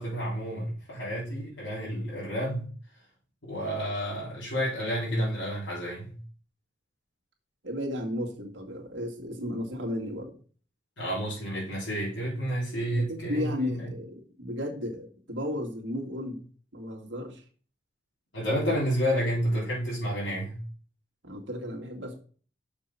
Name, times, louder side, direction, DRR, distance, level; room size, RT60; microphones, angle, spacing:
voice 1, 0.0-2.7 3.4-6.1 11.0-13.8 18.3-20.6, equal, 75° left, 4.0 m, -30 dB
voice 2, 7.6-10.3 12.9-16.5 16.7-17.4 21.2-22.2, left 1 dB, 70° right, 2.2 m, -34 dB
6.9 x 5.4 x 5.6 m
head